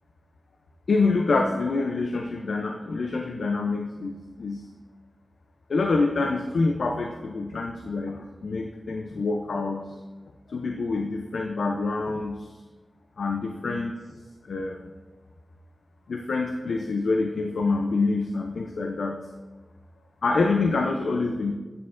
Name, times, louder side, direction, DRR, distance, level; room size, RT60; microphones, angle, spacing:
voice 1, 0.9-4.7 5.7-9.9 10.5-12.5 13.2-14.0 14.5-14.8 16.1-19.2 20.2-21.5, left 3 dB, 85° left, 3 dB, 0.4 m, -26 dB
8.4 x 7.0 x 2.5 m, 1.3 s
cardioid pair, 45°, 0 cm